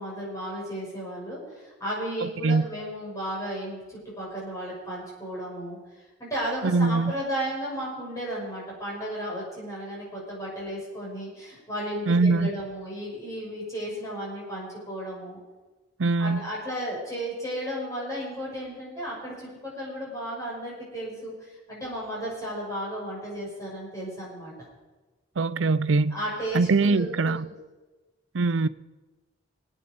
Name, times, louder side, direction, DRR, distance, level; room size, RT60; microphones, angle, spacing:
voice 1, 0.0-3.8 4.2-5.8 6.2-15.4 16.2-24.5 26.1-27.5, equal, 15° left, 6.2 m, -34 dB
voice 2, 2.2-2.7 6.6-7.1 12.1-12.5 16.0-16.4 25.4-26.2 26.5-27.5 28.3-28.7, right 3 dB, 80° right, 0.6 m, -22 dB
21.0 x 9.3 x 5.3 m
head